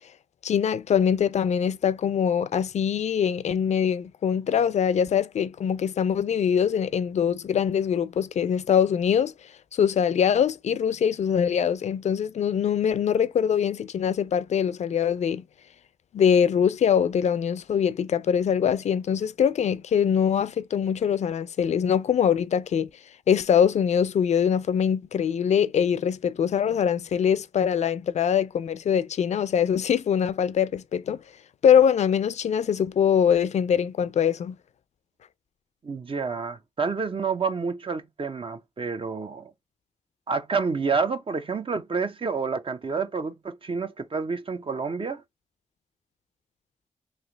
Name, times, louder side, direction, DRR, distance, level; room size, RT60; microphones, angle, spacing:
voice 1, 0.4-9.3 9.7-15.4 16.1-22.9 23.3-31.2 31.6-34.6, left 8 dB, 65° left, 0.4 m, -23 dB
voice 2, 35.8-39.5 40.3-45.2, right 5 dB, 45° right, 0.5 m, -29 dB
3.3 x 2.4 x 3.8 m
cardioid pair, 45°, 13 cm